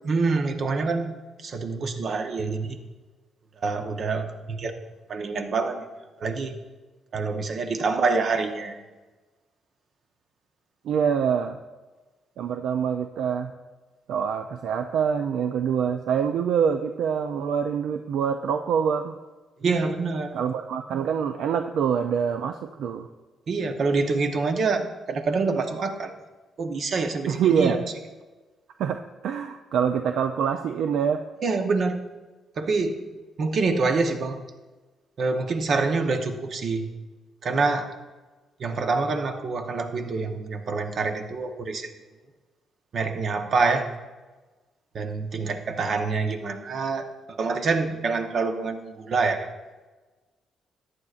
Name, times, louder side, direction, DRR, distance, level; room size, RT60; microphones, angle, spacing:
voice 1, 0.0-1.1 1.4-2.8 3.6-4.7 5.1-5.9 6.2-6.6 7.1-8.8 19.6-20.3 23.5-26.1 26.6-27.8 31.4-32.1 32.5-33.0 33.4-34.4 35.2-36.9 37.4-37.9 38.6-41.9 42.9-43.9 44.9-49.5, right 4 dB, 60° right, 6 dB, 1.0 m, -26 dB
voice 2, 10.8-11.6 12.4-13.5 14.1-19.2 20.3-23.1 27.3-27.8 28.8-31.2, right 7 dB, 80° right, 7 dB, 0.4 m, -25 dB
14.0 x 9.7 x 2.5 m, 1.3 s
cardioid pair, 75°, 0 cm